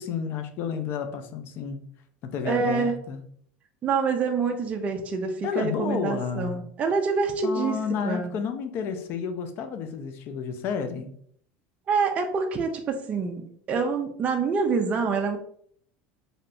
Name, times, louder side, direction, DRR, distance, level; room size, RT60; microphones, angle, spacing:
voice 1, 0.0-1.8 2.2-3.2 5.4-6.6 7.4-11.1, left 6 dB, 45° left, 8 dB, 0.4 m, -31 dB
voice 2, 2.4-2.9 3.8-8.3 11.9-15.4, right 5 dB, 25° right, 3 dB, 0.4 m, -26 dB
3.3 x 2.7 x 2.5 m, 0.63 s
supercardioid pair, 145°, 5 cm